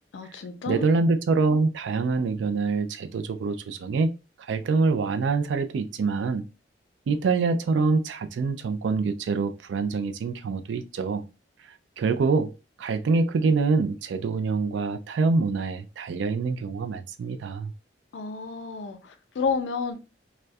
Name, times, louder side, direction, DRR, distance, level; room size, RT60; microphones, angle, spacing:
voice 1, 0.1-0.9 18.1-20.0, left 5 dB, 85° left, 0.4 m, -30 dB
voice 2, 0.7-4.1 4.5-6.5 7.1-11.2 12.0-12.5 12.8-17.7, right 4 dB, 85° right, 0.3 m, -25 dB
2.3 x 2.1 x 2.5 m
head